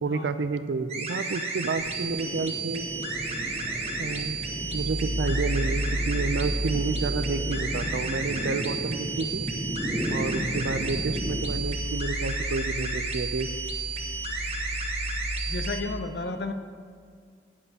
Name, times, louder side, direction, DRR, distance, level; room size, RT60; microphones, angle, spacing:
voice 1, 0.0-2.9 4.0-4.4 4.7-9.5 10.1-13.5, right 4 dB, 70° right, 10 dB, 0.4 m, -30 dB
sound 1, 0.9-15.8, right 4 dB, 35° right, 1.1 m, -33 dB
sound 2, 1.7-11.4, equal, 15° right, 0.7 m, -35 dB
sound 3, 2.8-15.7, equal, 50° right, 1.5 m, -34 dB
voice 2, 15.5-16.5, left 3 dB, 60° left, 8 dB, 0.6 m, -32 dB
14.5 x 10.0 x 2.8 m, 2.1 s
head